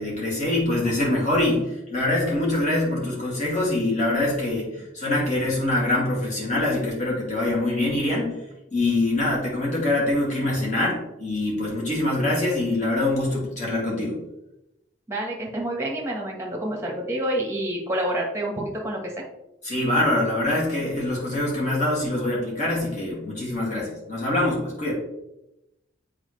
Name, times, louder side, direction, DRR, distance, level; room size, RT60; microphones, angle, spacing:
voice 1, 0.0-8.4 8.7-14.2 19.6-24.9, left 1 dB, 35° left, -4 dB, 2.3 m, -24 dB
voice 2, 15.1-19.2, right 1 dB, 15° right, -1 dB, 1.3 m, -28 dB
7.5 x 4.8 x 3.2 m, 0.90 s
head